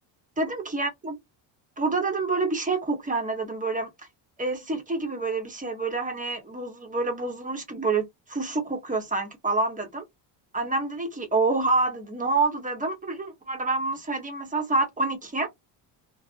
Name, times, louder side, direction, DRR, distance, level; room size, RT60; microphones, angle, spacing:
voice 1, 0.4-1.2 1.8-3.9 4.4-10.0 10.5-15.5, right 3 dB, 15° right, 0.9 m, -27 dB
2.5 x 2.0 x 2.4 m
cardioid pair, 110°, 46 cm